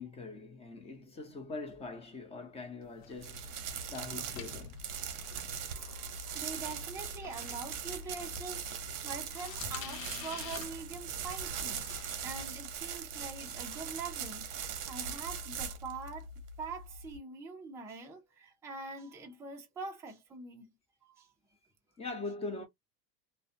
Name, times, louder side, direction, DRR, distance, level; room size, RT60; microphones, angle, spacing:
voice 1, 0.0-4.8 22.0-22.7, left 3 dB, 15° left, 0.7 m, -42 dB
sound 1, 2.8-12.2, left 10 dB, 70° left, 0.6 m, -49 dB
sound 2, 3.2-17.2, right 6 dB, 50° right, 0.8 m, -40 dB
voice 2, 5.2-16.3 16.6-20.7 21.0-21.3, right 4 dB, 10° right, 0.3 m, -44 dB
2.3 x 2.1 x 2.6 m
supercardioid pair, 135°, 42 cm